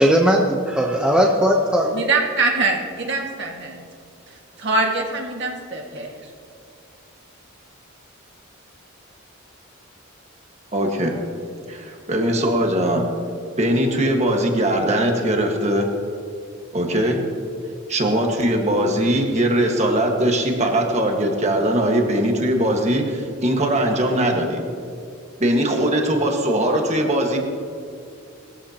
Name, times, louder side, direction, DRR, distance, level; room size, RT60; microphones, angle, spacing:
voice 1, 0.0-2.0, equal, 5° right, 0 dB, 0.7 m, -18 dB
voice 2, 1.9-3.8 4.6-6.1, right 3 dB, 55° right, 0 dB, 1.8 m, -23 dB
voice 3, 10.7-11.1 11.7-13.1 13.6-15.9 16.7-17.2 17.9-24.6 25.4-27.4, right 1 dB, 30° right, 2 dB, 1.6 m, -20 dB
19.5 x 14.0 x 2.9 m, 2.4 s
head